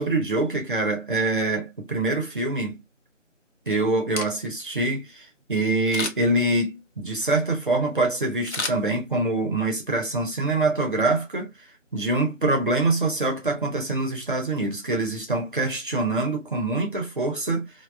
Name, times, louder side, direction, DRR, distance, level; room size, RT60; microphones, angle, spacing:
voice 1, 0.0-2.8 3.7-11.5 11.9-17.7, right 2 dB, 45° right, 0.8 m, -25 dB
Camera, 4.0-4.7 5.9-6.4 8.5-9.4 9.8-9.9, left 3 dB, 65° left, 0.7 m, -32 dB
2.4 x 2.3 x 2.2 m
figure-of-eight pair, 165°, 37 cm